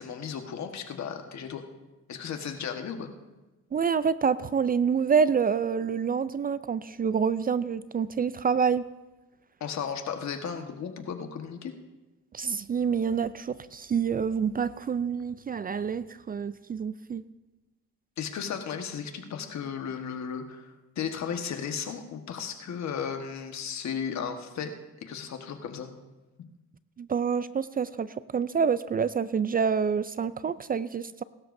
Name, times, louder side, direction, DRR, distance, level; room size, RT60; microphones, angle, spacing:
voice 1, 0.0-1.6 2.1-3.1 9.6-11.7 18.2-24.7 25.0-25.9 26.4-26.5, left 7 dB, 65° left, 5 dB, 1.4 m, -35 dB
voice 2, 3.7-8.8 12.3-17.2 27.0-31.2, right 6 dB, 30° right, 16 dB, 0.4 m, -27 dB
21.0 x 12.5 x 2.6 m, 1.1 s
cardioid pair, 90°, 30 cm